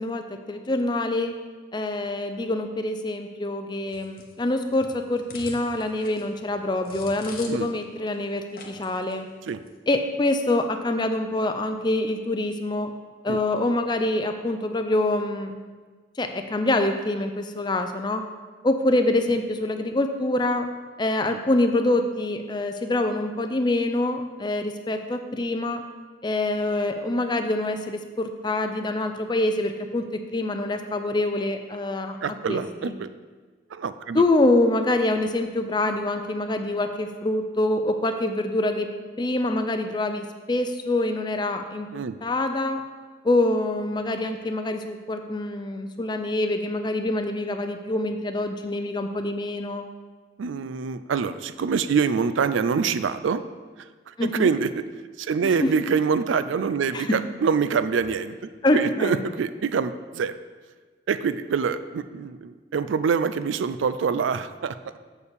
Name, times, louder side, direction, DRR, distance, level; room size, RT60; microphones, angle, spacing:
voice 1, 0.0-1.3 1.7-9.3 9.9-12.9 13.2-15.6 16.2-18.2 18.6-20.7 21.0-25.8 26.2-32.2 32.5-32.9 34.1-41.9 42.2-42.8 43.2-49.8 54.2-54.5 55.4-55.7 56.9-57.2 58.6-59.2, left 2 dB, 20° left, 6 dB, 0.4 m, -25 dB
sound 1, 3.9-7.8 8.1-8.2 8.5-9.1 9.5-9.7, left 4 dB, 45° left, 0.8 m, -44 dB
voice 2, 32.2-33.1 33.7-34.2 41.9-42.2 50.4-53.4 54.2-54.8 55.2-60.3 61.1-65.0, right 6 dB, 80° right, 12 dB, 0.4 m, -25 dB
7.0 x 4.5 x 6.7 m, 1.4 s
head